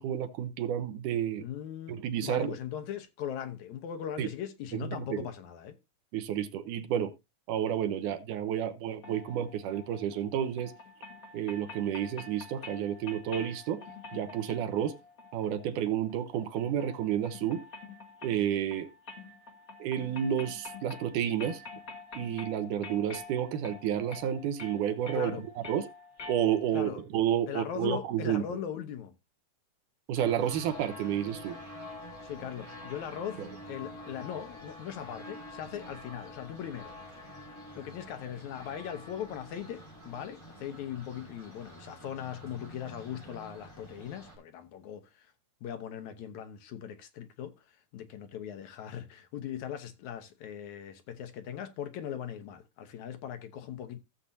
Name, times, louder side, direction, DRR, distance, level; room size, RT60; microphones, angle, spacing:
voice 1, 0.0-1.5 1.9-2.6 4.2-4.3 4.9-5.3 6.1-7.1 7.5-10.7 11.3-13.8 14.1-15.0 15.3-17.6 18.2-18.9 19.8-21.6 22.1-25.4 25.7-25.8 26.3-28.4 30.1-31.6 33.4-33.5, right 10 dB, 75° right, 2.4 m, -31 dB
voice 2, 1.4-5.8 25.1-25.4 26.7-27.0 27.5-29.2 32.2-37.4 37.8-45.3 45.6-54.0, left 9 dB, 70° left, 2.2 m, -40 dB
sound 1, 9.0-26.9, left 4 dB, 35° left, 1.4 m, -47 dB
sound 2, 30.1-44.4, left 1 dB, 10° left, 5.2 m, -47 dB
15.5 x 7.3 x 2.7 m
omnidirectional pair, 3.7 m